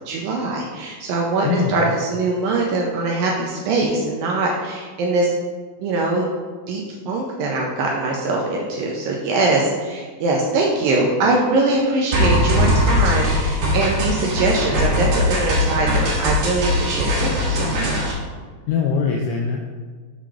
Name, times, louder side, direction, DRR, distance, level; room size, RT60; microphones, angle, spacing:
voice 1, 0.1-5.3 5.8-6.3 6.7-18.2, right 3 dB, 85° right, -1 dB, 2.1 m, -22 dB
voice 2, 1.4-1.9 18.7-19.6, left 5 dB, 85° left, 1 dB, 2.0 m, -22 dB
sound 1, 12.1-18.1, left 1 dB, 60° right, 2.4 m, -20 dB
6.8 x 3.8 x 4.8 m, 1.5 s
omnidirectional pair, 4.6 m